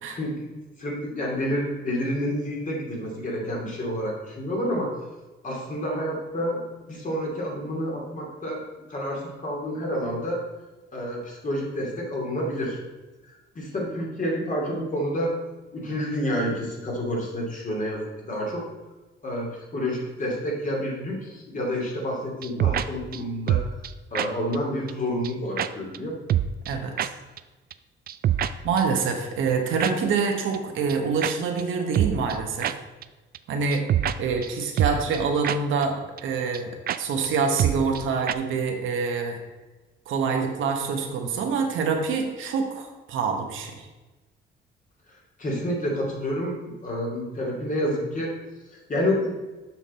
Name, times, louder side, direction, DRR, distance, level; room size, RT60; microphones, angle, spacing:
voice 1, 0.1-0.5 0.8-4.9 5.4-6.6 6.9-8.6 8.9-10.4 10.9-12.8 13.2-15.3 15.7-18.6 19.2-23.6 24.1-26.1 45.4-48.3 48.7-49.3, equal, 40° left, -2 dB, 2.4 m, -29 dB
sound 1, 22.4-22.9 23.1-23.2 23.5-23.9 24.1-24.3 24.5-24.6 24.9-25.0 25.2-25.3 25.6-25.7 25.9-26.0 26.3-26.7 27.0-27.1 27.4-27.5 27.7-27.8 28.1-28.5 28.8-28.9 29.8-29.9 30.2-30.3 30.5-30.6 30.9-31.0 31.2-31.3 31.6-31.7 31.9-32.4 32.6-32.7 33.0-33.1 33.3-33.4 33.7-34.2 34.4-34.5 34.8-35.2 35.4-35.6 35.8-35.9 36.2-36.3 36.5-36.6 36.9-37.0 37.2-37.3 37.6-38.0 38.3-38.4, right 10 dB, 50° right, 0.4 m, -24 dB
voice 2, 26.7-27.1 28.6-32.7 33.5-33.8 34.2-36.7 37.0-39.4 40.1-43.9, right 5 dB, 80° right, 3 dB, 1.2 m, -26 dB
7.1 x 5.8 x 4.2 m, 1.2 s
cardioid pair, 90°, 20 cm